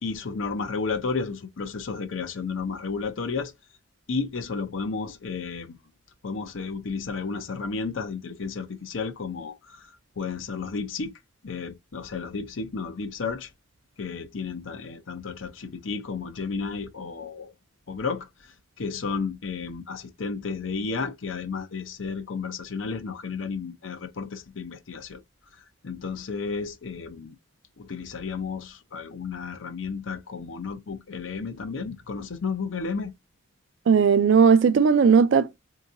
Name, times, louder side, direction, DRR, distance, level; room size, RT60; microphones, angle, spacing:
voice 1, 0.0-3.5 4.1-5.8 6.2-11.1 11.4-13.5 14.0-17.5 17.9-18.3 18.8-25.2 25.8-27.4 27.8-33.1, left 4 dB, 80° left, 0.6 m, -32 dB
voice 2, 33.9-35.6, right 6 dB, 65° right, 0.4 m, -17 dB
3.7 x 2.8 x 2.5 m
head